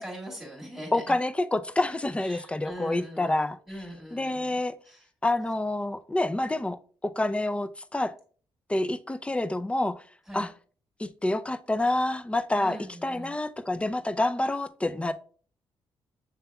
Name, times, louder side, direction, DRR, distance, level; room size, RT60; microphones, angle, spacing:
voice 1, 0.0-1.0 2.2-3.3 3.7-4.5 4.8-5.1 10.3-10.5 12.5-13.3, equal, 5° right, 1.9 m, -41 dB
voice 2, 0.9-3.6 4.1-4.7 5.2-8.1 8.7-10.0 10.3-10.5 11.0-15.1, left 2 dB, 10° left, 0.4 m, -28 dB
6.8 x 3.4 x 2.2 m
cardioid pair, 70°, 10 cm